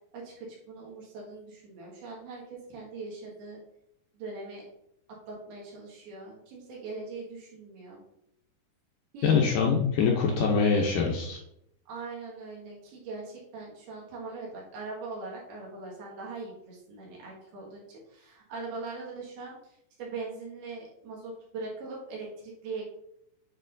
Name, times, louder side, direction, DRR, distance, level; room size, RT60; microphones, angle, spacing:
voice 1, 0.1-3.6 4.1-4.6 5.3-8.0 9.1-9.3 10.0-10.2 11.9-22.8, right 3 dB, 80° right, -4 dB, 3.7 m, -41 dB
voice 2, 9.2-11.4, left 5 dB, 75° left, -1 dB, 2.0 m, -24 dB
8.7 x 4.4 x 2.6 m, 0.76 s
omnidirectional pair, 4.4 m